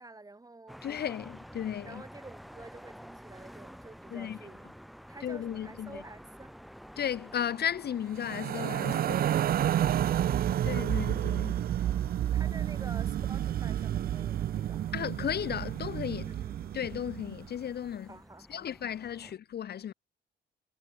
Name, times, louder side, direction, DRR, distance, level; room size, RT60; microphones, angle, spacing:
voice 1, 0.0-0.8 1.8-4.7 5.1-6.5 11.7-15.0 16.3-16.6 18.1-18.7 19.2-19.3, right 2 dB, 20° right, 4.8 m, -50 dB
sound 1, 0.7-19.3, equal, ahead, 5.6 m, -51 dB
voice 2, 0.8-2.0 4.1-4.4 5.2-6.0 7.0-9.3 10.6-11.5 14.9-16.3 16.7-18.1 18.5-19.9, left 9 dB, 55° left, 1.0 m, -35 dB
sound 2, 8.2-17.5, right 11 dB, 50° right, 0.4 m, -30 dB
cardioid pair, 90°, 20 cm